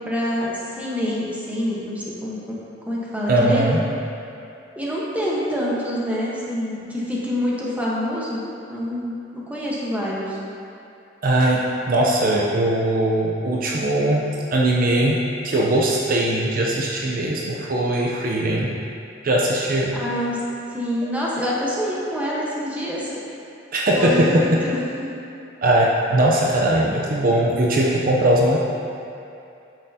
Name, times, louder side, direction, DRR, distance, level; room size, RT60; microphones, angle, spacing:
voice 1, 0.0-2.6 2.9-3.6 4.8-8.4 8.7-10.4 19.9-20.4 20.7-23.2 23.9-25.1, equal, 10° right, -6 dB, 1.1 m, -26 dB
voice 2, 3.3-3.8 11.2-18.7 19.2-20.0 23.7-24.7 25.6-28.6, right 1 dB, 50° right, -3 dB, 0.6 m, -20 dB
8.7 x 6.4 x 2.8 m, 2.7 s
head